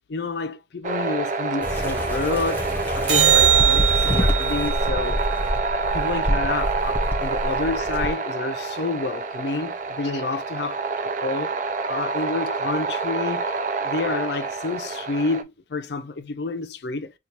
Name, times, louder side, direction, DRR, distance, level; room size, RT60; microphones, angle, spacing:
voice 1, 0.1-2.7 2.9-5.2 5.9-10.8 11.2-11.6 11.9-13.5 13.8-17.1, left 3 dB, 60° left, 0.5 m, -29 dB
sound 1, 0.8-15.4, right 4 dB, 45° right, 0.4 m, -27 dB
sound 2, 1.6-8.1, equal, 10° left, 0.8 m, -26 dB
sound 3, 3.1-7.6 14.1-14.2, right 9 dB, 80° right, 1.1 m, -23 dB
4.5 x 2.4 x 2.7 m
head